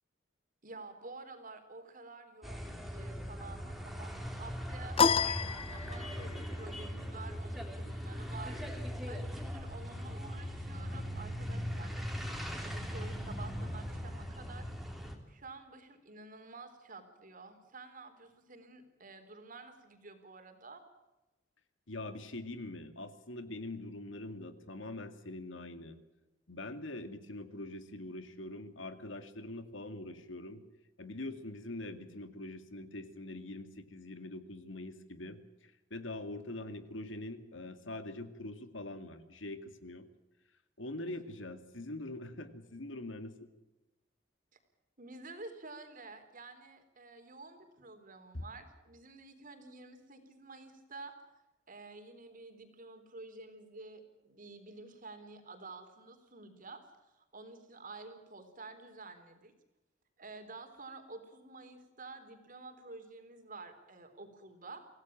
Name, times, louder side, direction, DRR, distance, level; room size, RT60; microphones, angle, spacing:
voice 1, 0.6-5.0 5.4-14.7 15.3-20.8 45.0-51.1 51.7-59.5 60.2-64.9, right 3 dB, 45° right, 7 dB, 3.8 m, -50 dB
sound 1, 2.4-15.2, equal, ahead, 3.3 m, -40 dB
sound 2, 5.0-6.3, left 6 dB, 30° left, 0.7 m, -29 dB
voice 2, 21.9-26.0 26.5-30.6 31.0-40.1 40.8-43.3 48.3-48.4, left 2 dB, 90° left, 9 dB, 2.3 m, -43 dB
26.0 x 17.0 x 7.4 m, 1.0 s
head